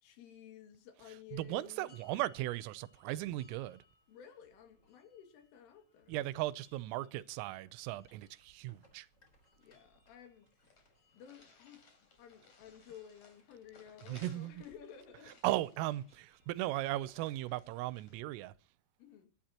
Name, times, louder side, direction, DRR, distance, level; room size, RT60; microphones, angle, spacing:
voice 1, 0.0-1.9 4.1-6.2 9.6-10.8 11.1-15.4 19.0-19.3, left 9 dB, 75° left, 4.8 m, -54 dB
voice 2, 1.3-3.8 6.1-9.1 14.1-14.6 15.4-18.5, right 16 dB, 90° right, 3.4 m, -37 dB
sound 1, 1.5-17.2, left 2 dB, 15° left, 3.3 m, -69 dB
sound 2, 10.0-10.1 10.3-10.4 10.7-18.2, left 4 dB, 40° left, 4.4 m, -64 dB
23.0 x 12.0 x 3.0 m
omnidirectional pair, 5.8 m